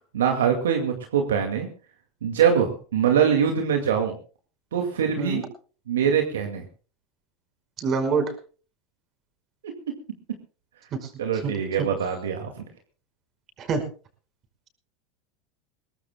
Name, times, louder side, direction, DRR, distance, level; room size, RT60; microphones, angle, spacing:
voice 1, 0.1-1.7 2.2-4.1 4.7-5.5 5.9-6.6 9.6-9.7 11.2-12.6, right 7 dB, 80° right, 4 dB, 2.2 m, -23 dB
voice 2, 7.8-8.3 11.4-11.5 13.6-13.8, right 4 dB, 40° right, 6 dB, 5.1 m, -25 dB
22.5 x 19.0 x 2.3 m, 0.39 s
hypercardioid pair, 90°, 0 cm